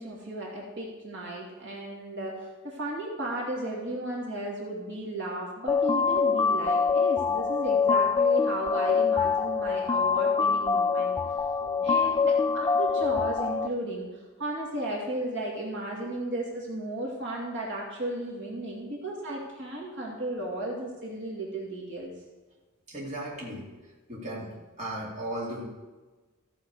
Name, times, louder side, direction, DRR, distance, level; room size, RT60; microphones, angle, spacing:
voice 1, 0.0-11.1 11.8-14.1 14.4-22.1, right 1 dB, 60° right, -3 dB, 2.5 m, -34 dB
sound 1, 5.7-13.7, left 5 dB, 20° left, 0.3 m, -25 dB
voice 2, 11.6-12.0 18.6-18.8 22.9-23.7 24.1-24.5 24.8-25.7, right 1 dB, 35° right, -5 dB, 2.6 m, -36 dB
14.5 x 6.9 x 4.9 m, 1.2 s
head